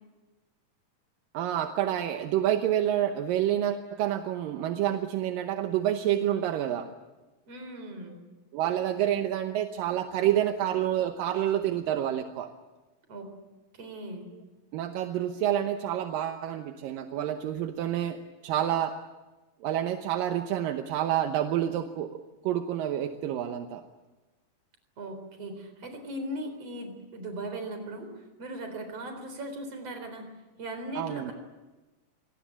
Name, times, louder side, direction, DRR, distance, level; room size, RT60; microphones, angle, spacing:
voice 1, 1.3-6.9 8.1-8.2 8.5-12.5 14.3-14.4 14.7-18.2 18.4-19.0 19.6-23.8 31.0-31.3, right 11 dB, 80° right, 6 dB, 2.7 m, -28 dB
voice 2, 7.5-8.2 13.1-13.3 13.7-14.3 25.0-30.3 30.6-31.3, right 1 dB, 45° right, 6 dB, 5.0 m, -38 dB
26.5 x 18.5 x 8.8 m, 1.2 s
omnidirectional pair, 4.0 m